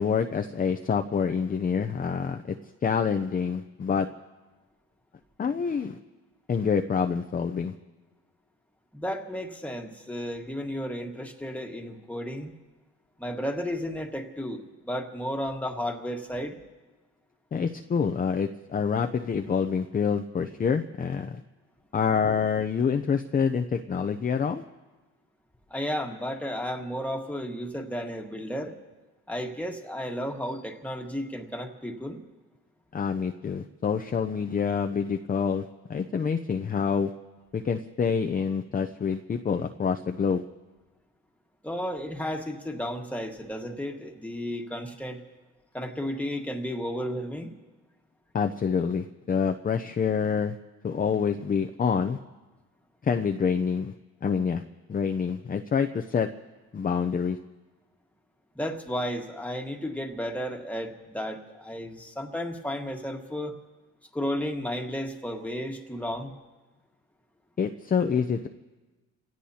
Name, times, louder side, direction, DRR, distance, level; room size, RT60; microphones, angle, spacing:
voice 1, 0.0-2.5 2.8-4.1 5.4-6.0 6.5-7.7 17.5-21.4 21.9-24.6 32.9-35.6 35.9-37.1 37.5-40.4 48.3-50.6 50.8-52.2 53.0-53.9 54.2-54.6 54.9-56.3 56.7-57.4 67.6-68.5, left 6 dB, 30° left, 5 dB, 0.6 m, -27 dB
voice 2, 8.9-12.5 13.2-16.6 25.7-28.7 29.3-32.2 41.6-45.2 45.7-47.6 58.5-63.5 64.1-66.3, equal, 5° left, 2 dB, 1.6 m, -33 dB
30.0 x 16.5 x 2.9 m, 1.2 s
cardioid pair, 90°, 30 cm